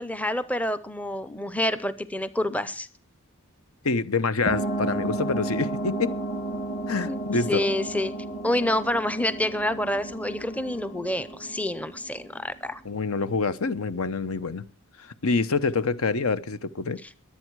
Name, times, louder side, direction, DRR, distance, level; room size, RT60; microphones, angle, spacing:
voice 1, 0.0-2.9 7.1-7.2 7.5-8.1 8.4-12.8 17.0-17.1, left 1 dB, 5° left, 0.6 m, -28 dB
voice 2, 3.8-6.1 6.9-7.6 12.8-14.6 15.2-17.0, left 4 dB, 75° left, 0.9 m, -26 dB
sound 1, 4.5-12.6, right 2 dB, 35° left, 2.1 m, -33 dB
22.5 x 8.6 x 4.7 m
head